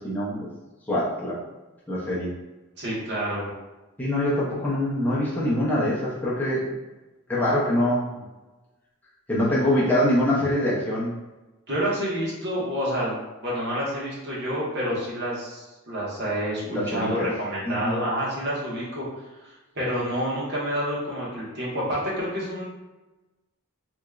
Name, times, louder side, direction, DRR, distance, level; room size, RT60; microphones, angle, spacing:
voice 1, 0.0-0.5 0.9-1.4 1.9-2.3 4.0-6.7 7.3-8.1 9.3-11.1 16.6-17.3 17.7-18.0, left 1 dB, 10° left, -8 dB, 0.6 m, -24 dB
voice 2, 2.8-3.5 11.7-19.0 19.4-22.7, equal, 50° right, -6 dB, 1.2 m, -28 dB
3.4 x 3.0 x 2.4 m, 1.1 s
head